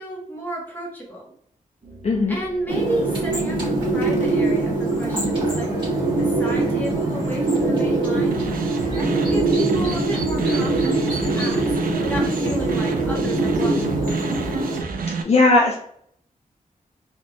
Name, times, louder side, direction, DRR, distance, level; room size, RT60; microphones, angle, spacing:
voice 1, 0.0-1.3 2.3-8.5 9.0-11.7 11.9-13.9, right 1 dB, 15° left, -3 dB, 1.2 m, -32 dB
sound 1, 1.8-7.0, right 1 dB, 50° right, 1.0 m, -40 dB
voice 2, 2.0-2.4 15.2-15.7, left 2 dB, 45° left, -1 dB, 0.5 m, -17 dB
sound 2, 2.7-14.8, right 2 dB, 35° right, 1.3 m, -22 dB
sound 3, 8.3-15.2, right 4 dB, 80° right, 0.5 m, -30 dB
4.1 x 3.0 x 2.3 m, 0.66 s
wide cardioid pair, 125°, 14 cm